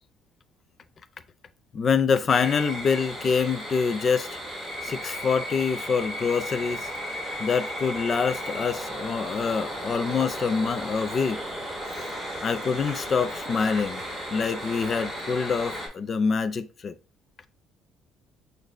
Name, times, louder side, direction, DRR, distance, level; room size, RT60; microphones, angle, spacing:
voice 1, 1.7-4.4 4.8-6.9 7.4-11.4 12.4-14.0 14.3-16.9, left 5 dB, 30° left, 0.4 m, -25 dB
sound 1, 2.3-15.9, equal, 10° right, 2.3 m, -34 dB
6.2 x 2.6 x 3.2 m
cardioid pair, 170°, 0 cm